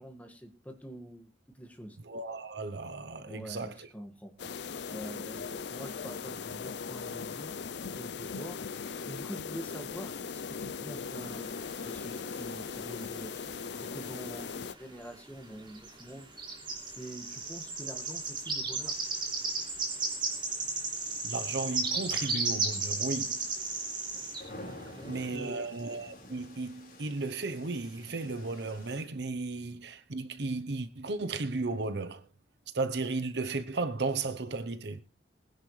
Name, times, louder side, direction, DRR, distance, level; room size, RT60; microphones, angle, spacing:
voice 1, 0.0-2.0 3.3-7.5 7.9-13.3 13.7-16.5 16.9-19.0 24.8-25.7, equal, 10° left, 1.8 m, -46 dB
voice 2, 2.0-3.9 21.2-23.4 25.1-32.2 32.7-35.0, right 3 dB, 60° right, 0.9 m, -35 dB
sound 1, 4.4-14.7, left 5 dB, 65° left, 0.6 m, -39 dB
sound 2, 11.3-12.9 13.2-14.5 14.8-15.0 15.6-24.5, right 3 dB, 25° right, 3.4 m, -34 dB
sound 3, 18.8-29.0, left 1 dB, 45° left, 4.7 m, -51 dB
20.5 x 10.5 x 3.3 m
head